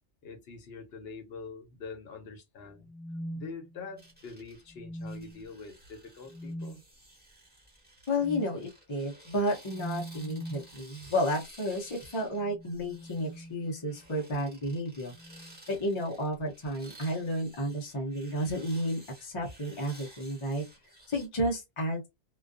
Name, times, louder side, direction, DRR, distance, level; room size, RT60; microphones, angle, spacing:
voice 1, 0.2-2.9 3.3-6.8, left 4 dB, 65° left, 0.9 m, -44 dB
sound 1, 2.8-4.1 4.7-5.5 6.3-6.8 8.2-8.6 9.7-10.7 12.2-14.1 15.1-15.6 16.8-17.1, right 1 dB, 25° right, 0.3 m, -42 dB
sound 2, 4.0-21.3, right 1 dB, 10° right, 1.2 m, -55 dB
voice 2, 8.1-15.1 15.7-20.7 21.1-22.1, equal, 35° left, 0.5 m, -32 dB
2.4 x 2.2 x 2.3 m
omnidirectional pair, 1.1 m